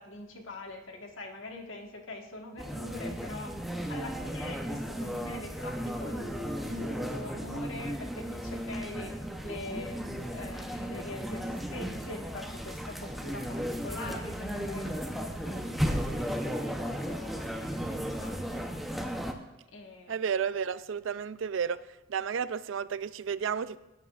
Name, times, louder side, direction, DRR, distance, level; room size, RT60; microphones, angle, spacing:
voice 1, 0.0-3.5 3.9-18.6 19.7-20.2, left 2 dB, 80° left, 2 dB, 1.5 m, -44 dB
sound 1, 2.6-19.3, equal, ahead, 0.7 m, -35 dB
voice 2, 20.1-21.8 22.1-23.8, right 7 dB, 70° right, 16 dB, 0.4 m, -32 dB
17.0 x 9.6 x 2.4 m, 1.0 s
head